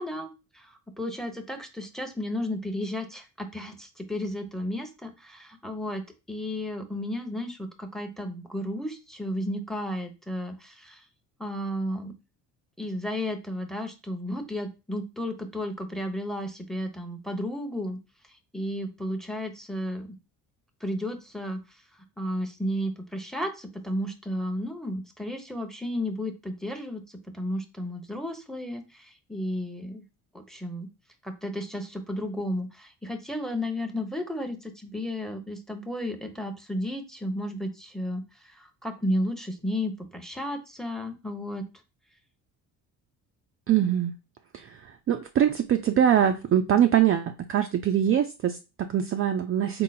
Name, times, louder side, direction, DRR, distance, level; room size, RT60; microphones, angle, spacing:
voice 1, 0.0-11.0 11.4-12.1 12.8-18.0 18.5-20.2 20.8-21.6 22.2-27.0 27.3-30.0 30.3-30.9 31.2-38.2 38.5-41.7, left 1 dB, ahead, 0.8 m, -33 dB
voice 2, 43.7-44.1 44.5-49.8, right 10 dB, 35° right, 0.4 m, -23 dB
3.9 x 2.0 x 4.0 m
hypercardioid pair, 60°, 44 cm